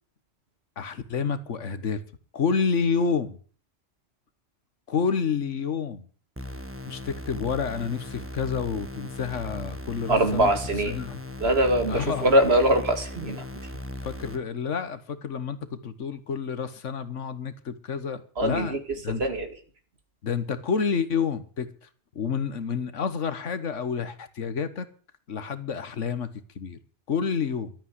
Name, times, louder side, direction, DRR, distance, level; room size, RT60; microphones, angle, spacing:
voice 1, 0.8-2.0 2.3-3.4 4.9-6.1 6.9-10.6 10.9-11.2 11.9-12.3 14.0-18.7 19.0-19.2 20.2-21.7 22.1-24.9 25.3-26.8 27.1-27.7, left 6 dB, 80° left, 1.6 m, -29 dB
sound 1, 6.4-14.4, left 1 dB, 10° right, 1.4 m, -38 dB
voice 2, 10.1-11.0 11.4-13.5 18.4-18.8 19.1-19.5, right 1 dB, 55° right, 2.5 m, -22 dB
12.5 x 8.7 x 9.4 m
omnidirectional pair, 1.2 m